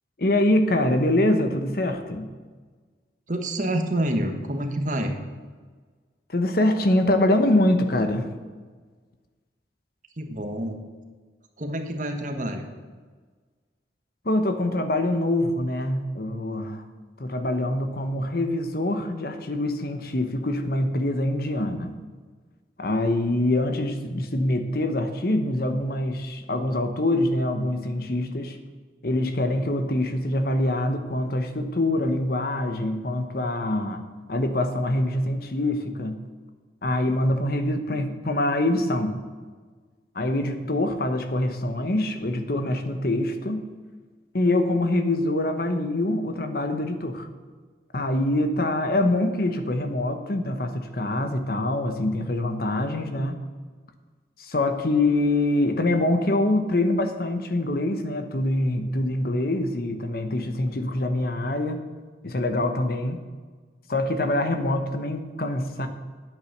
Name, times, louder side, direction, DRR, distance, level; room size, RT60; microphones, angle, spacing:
voice 1, 0.2-2.3 6.3-8.3 14.2-16.9 17.2-22.0 22.8-28.6 29.0-34.0 34.3-36.2 36.8-39.2 40.1-43.6 44.3-47.3 47.9-53.4 54.4-61.8 62.2-63.2 63.9-65.9, left 1 dB, 55° left, 7 dB, 1.0 m, -24 dB
voice 2, 3.3-5.2 10.2-10.8 11.6-12.7, right 1 dB, 45° right, 5 dB, 1.2 m, -27 dB
9.7 x 8.5 x 6.5 m, 1.5 s
head